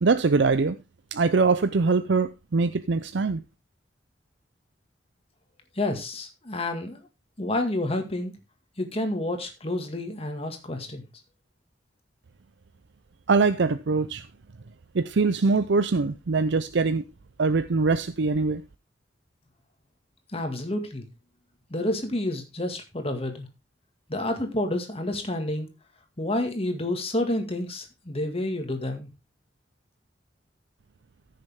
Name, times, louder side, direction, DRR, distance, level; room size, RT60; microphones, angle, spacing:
voice 1, 0.0-0.8 1.1-3.4 13.3-14.3 14.9-17.0 17.4-18.6, right 4 dB, 70° right, 0.6 m, -23 dB
voice 2, 5.8-7.0 7.4-8.3 8.8-11.0 20.3-21.1 21.7-23.5 24.1-25.7 26.2-29.1, left 1 dB, 35° left, 2.0 m, -29 dB
14.5 x 6.6 x 3.6 m
head